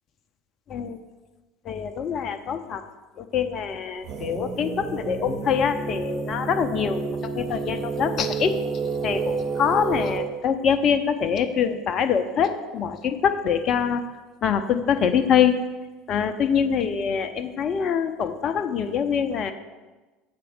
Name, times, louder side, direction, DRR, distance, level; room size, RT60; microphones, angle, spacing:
voice 1, 0.7-1.0 1.6-2.8 3.2-8.6 9.0-14.0 14.4-15.6 16.1-19.5, left 7 dB, 40° left, 9 dB, 0.6 m, -24 dB
sound 1, 4.0-10.2, right 4 dB, 45° right, 1.1 m, -30 dB
7.6 x 4.4 x 6.4 m, 1.2 s
figure-of-eight pair, 65°, 0 cm